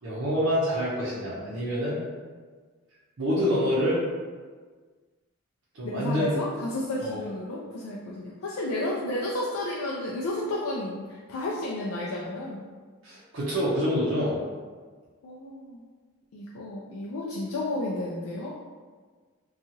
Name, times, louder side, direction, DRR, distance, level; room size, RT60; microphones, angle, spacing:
voice 1, 0.0-2.0 3.2-4.0 5.7-6.3 7.0-7.2 13.0-14.3, equal, 60° right, -8 dB, 0.6 m, -26 dB
voice 2, 5.8-12.7 15.2-15.8 16.3-18.5, left 1 dB, 80° left, -4 dB, 0.4 m, -32 dB
2.8 x 2.3 x 2.7 m, 1.5 s
head